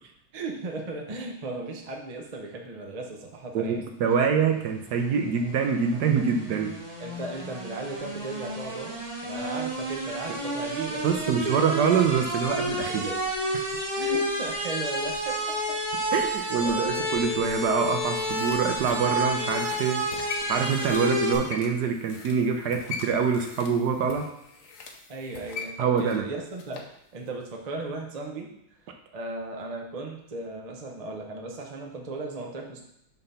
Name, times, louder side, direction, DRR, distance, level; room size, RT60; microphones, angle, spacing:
voice 1, 0.3-3.8 7.0-11.8 13.0-13.2 14.0-15.8 16.6-17.2 25.1-26.8 27.1-28.5 29.1-32.8, right 3 dB, 85° right, 1 dB, 0.3 m, -36 dB
voice 2, 3.5-6.7 10.3-10.4 11.0-13.1 16.1-20.0 20.5-24.3 25.8-26.3, right 6 dB, 65° right, 4 dB, 1.1 m, -25 dB
sound 1, 4.6-21.4, equal, 30° right, 2.0 m, -31 dB
sound 2, 17.5-27.0 27.3-27.4, left 5 dB, 60° left, 0.9 m, -42 dB
6.1 x 3.9 x 5.5 m, 0.77 s
omnidirectional pair, 2.2 m